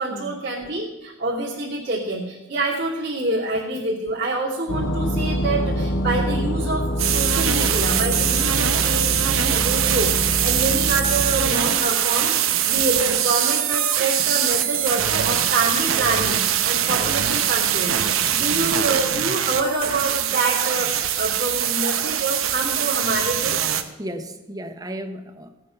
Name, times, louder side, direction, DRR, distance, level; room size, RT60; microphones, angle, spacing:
voice 1, 0.0-18.0 18.3-23.6, right 2 dB, 55° right, -8 dB, 2.6 m, -26 dB
sound 1, 4.7-11.5, equal, 65° left, 1.1 m, -25 dB
sound 2, 7.0-23.8, right 10 dB, 85° right, 0.9 m, -22 dB
voice 2, 18.4-18.7 24.0-25.5, equal, 20° right, 8 dB, 0.9 m, -35 dB
16.5 x 9.0 x 5.8 m, 1.0 s
head